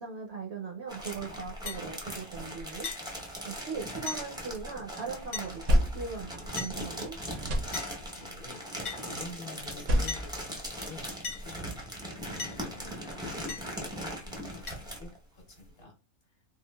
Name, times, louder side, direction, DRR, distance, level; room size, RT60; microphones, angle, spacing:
voice 1, 0.0-2.9 3.4-7.2, right 5 dB, 60° right, 0.7 m, -39 dB
sound 1, 0.9-15.2 15.8-15.9, equal, 5° right, 0.4 m, -40 dB
sound 2, 1.7-1.8 2.8-3.0 4.1-4.3 5.3-5.5 6.6-6.8 7.7-7.9 8.8-9.0 10.1-10.2 11.2-11.4 12.4-12.6 13.5-13.7 14.7-14.8, left 5 dB, 85° left, 0.3 m, -37 dB
sound 3, 3.3-4.8 5.2-7.0 7.3-8.3 9.6-11.3, equal, 80° right, 1.1 m, -31 dB
voice 2, 8.2-16.0 16.3-16.4, left 3 dB, 50° left, 0.9 m, -49 dB
3.7 x 2.4 x 2.2 m
omnidirectional pair, 1.5 m